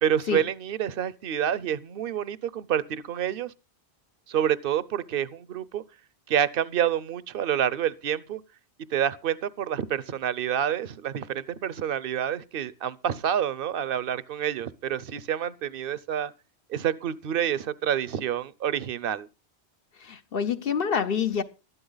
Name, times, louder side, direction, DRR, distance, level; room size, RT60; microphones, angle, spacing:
voice 1, 0.0-3.5 4.3-5.8 6.3-8.4 8.9-16.3 16.7-19.3, right 9 dB, 60° right, 0.9 m, -28 dB
voice 2, 20.0-21.4, left 7 dB, 60° left, 1.0 m, -27 dB
12.5 x 12.0 x 3.9 m
omnidirectional pair, 1.1 m